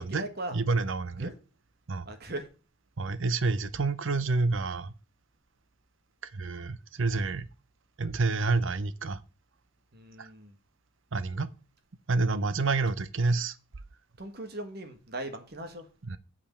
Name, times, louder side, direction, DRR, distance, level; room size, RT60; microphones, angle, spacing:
voice 1, 0.0-0.6 1.2-1.3 2.1-2.4 9.9-10.5 14.2-15.8, right 1 dB, 45° right, 1.6 m, -39 dB
voice 2, 0.5-1.3 1.9-2.1 3.0-4.9 6.3-7.5 8.0-9.2 10.2-10.3 11.1-11.5 12.1-13.5 16.0-16.2, right 3 dB, 60° right, 0.7 m, -28 dB
8.7 x 5.0 x 7.3 m
head